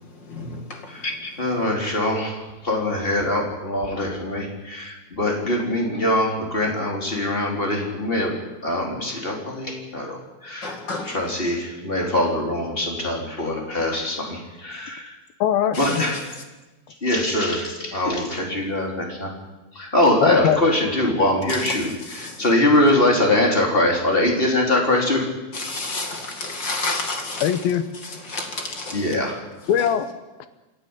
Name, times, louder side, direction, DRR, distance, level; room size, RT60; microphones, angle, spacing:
voice 1, 0.3-1.3 10.6-11.2 15.7-16.0 21.5-21.8 22.1-22.4 25.5-27.5 28.2-29.1, left 2 dB, 40° left, 5 dB, 1.8 m, -30 dB
voice 2, 1.4-2.4 2.6-8.4 8.6-10.2 10.4-10.7 11.0-15.1 15.8-16.3 17.0-19.3 19.8-25.2 26.9-27.0 28.9-29.4, left 1 dB, 15° left, 1 dB, 3.7 m, -22 dB
voice 3, 15.4-16.1 20.2-20.6 27.4-27.8 29.7-30.1, left 10 dB, 70° left, 11 dB, 2.5 m, -21 dB
27.5 x 12.0 x 9.9 m, 1.1 s
omnidirectional pair, 5.0 m